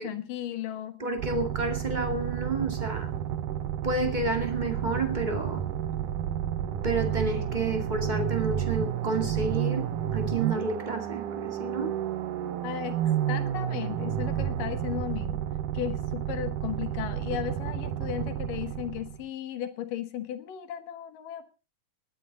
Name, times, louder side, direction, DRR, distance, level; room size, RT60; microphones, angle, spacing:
voice 1, 0.0-1.0 12.6-15.4 15.7-21.5, left 11 dB, 85° left, 3.1 m, -35 dB
voice 2, 1.0-3.1 3.8-5.6 6.8-12.0, right 2 dB, 15° right, 1.9 m, -30 dB
sound 1, 1.2-19.2, right 10 dB, 75° right, 2.6 m, -31 dB
20.0 x 11.0 x 4.0 m
omnidirectional pair, 3.7 m